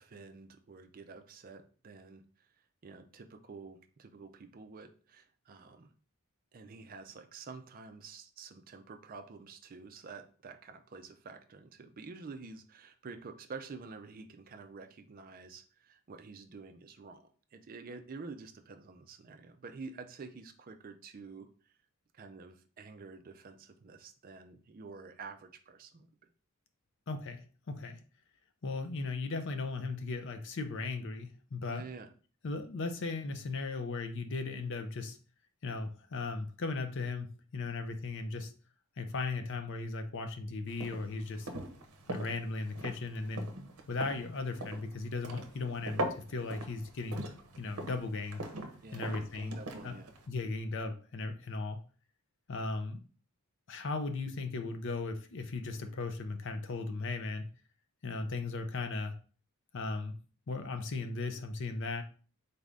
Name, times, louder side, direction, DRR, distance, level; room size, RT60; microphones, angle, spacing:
voice 1, 0.0-2.2 2.8-5.9 6.5-21.5 22.1-26.3 31.7-32.1 48.8-50.1, right 4 dB, 40° right, 7 dB, 0.4 m, -49 dB
voice 2, 27.1-28.0 28.6-31.8 32.4-35.2 35.6-37.3 37.5-38.5 39.0-41.5 42.1-43.5 43.9-47.3 47.6-48.4 48.9-49.6 49.8-49.9 50.3-51.8 52.5-53.0 53.7-57.5 58.0-59.1 59.7-60.1 60.5-62.0, left 3 dB, 55° left, 7 dB, 0.5 m, -37 dB
sound 1, 40.7-50.3, right 1 dB, 75° right, 0.7 m, -42 dB
4.0 x 2.5 x 3.3 m, 0.39 s
head